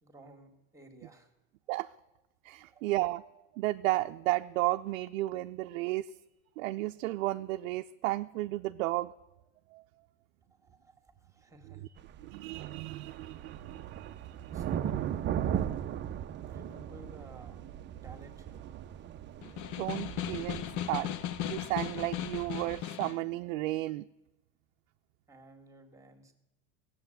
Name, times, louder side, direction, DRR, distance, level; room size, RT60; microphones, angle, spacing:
voice 1, 0.0-1.3 2.7-2.8 10.5-11.9 14.5-15.5 16.5-17.6 18.0-18.7 25.3-26.3, right 2 dB, 10° right, 5 dB, 1.9 m, -54 dB
voice 2, 2.4-6.1 6.6-9.1 9.7-9.8 12.2-14.6 19.8-21.1 21.4-24.1, right 18 dB, 70° right, 6 dB, 0.6 m, -33 dB
sound 1, 12.0-22.8, right 10 dB, 30° right, 0.6 m, -38 dB
Snare drum, 19.4-23.3, left 11 dB, 50° left, 0.8 m, -37 dB
16.5 x 7.7 x 9.1 m, 0.97 s
supercardioid pair, 110°, 39 cm